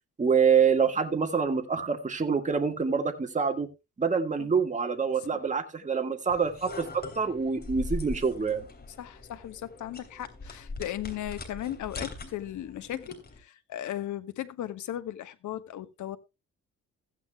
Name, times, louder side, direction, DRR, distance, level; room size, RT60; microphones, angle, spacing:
voice 1, 0.2-3.7 4.0-8.6, right 6 dB, 25° right, 1.7 m, -26 dB
sound 1, 6.3-13.4, left 2 dB, 35° left, 3.2 m, -41 dB
voice 2, 9.0-16.2, left 12 dB, 75° left, 1.3 m, -37 dB
15.5 x 9.5 x 2.3 m
cardioid pair, 90°, 30 cm